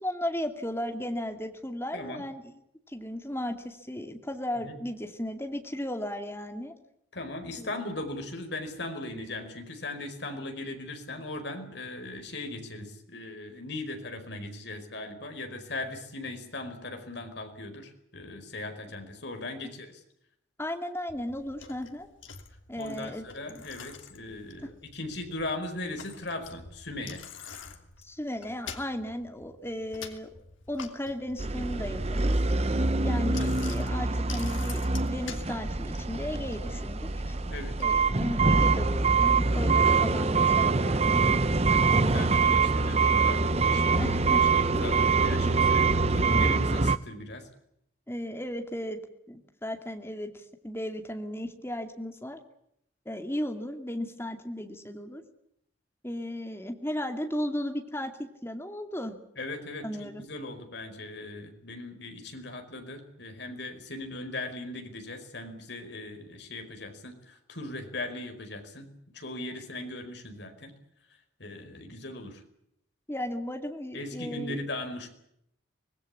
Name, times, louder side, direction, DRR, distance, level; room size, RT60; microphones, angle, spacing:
voice 1, 0.0-2.5 2.9-6.7 7.6-7.7 20.6-22.1 22.7-23.6 28.0-30.3 30.7-32.4 33.0-37.4 37.8-41.3 41.9-42.4 43.9-44.4 44.7-44.8 48.1-49.0 49.3-52.4 53.1-55.2 56.0-59.1 59.8-60.2 73.1-74.6, left 1 dB, 10° left, 5 dB, 2.4 m, -35 dB
voice 2, 1.9-2.2 4.6-4.7 7.1-20.0 22.8-27.2 32.7-33.1 37.5-37.8 41.6-47.5 59.4-70.7 71.4-72.4 73.9-75.1, left 2 dB, 60° left, 5 dB, 5.0 m, -39 dB
Bicycle, 21.1-39.9, left 3 dB, 80° left, 2.9 m, -45 dB
sound 1, 31.4-47.0, right 4 dB, 30° right, 0.8 m, -24 dB
25.0 x 19.5 x 8.5 m, 0.77 s
head